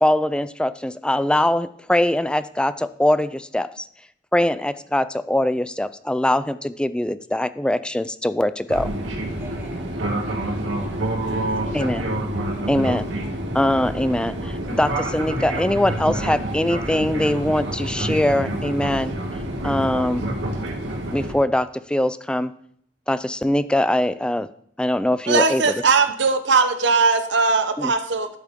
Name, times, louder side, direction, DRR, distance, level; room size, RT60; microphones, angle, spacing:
voice 1, 0.0-3.8 4.3-8.9 11.7-12.0 12.7-13.1 13.5-19.1 19.6-20.2 21.1-22.5 23.1-24.5 24.8-25.7 27.8-27.9, left 1 dB, 5° left, 14 dB, 0.3 m, -22 dB
Fixed-wing aircraft airplane, 8.7-21.3, right 1 dB, 90° right, 2.0 m, -27 dB
voice 2, 9.4-9.9 10.3-11.9, equal, 15° right, -3 dB, 2.5 m, -44 dB
voice 3, 25.3-28.3, right 4 dB, 70° right, 8 dB, 0.9 m, -19 dB
12.0 x 8.1 x 3.7 m, 0.65 s
head